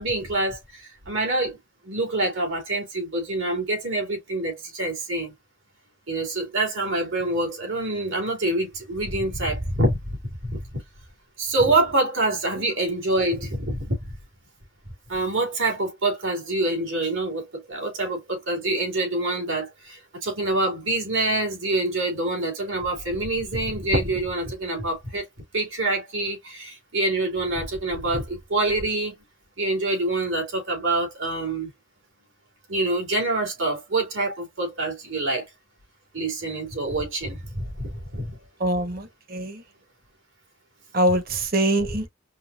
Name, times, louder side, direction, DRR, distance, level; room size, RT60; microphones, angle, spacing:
voice 1, 0.0-1.6 1.8-5.3 6.1-10.2 10.4-10.8 11.4-14.1 15.1-25.3 25.5-29.2 29.6-31.7 32.7-35.5 36.1-38.4, right 2 dB, 85° right, 2.5 m, -26 dB
voice 2, 38.6-39.6 40.9-42.1, right 1 dB, 50° right, 0.9 m, -23 dB
5.3 x 2.2 x 2.5 m
head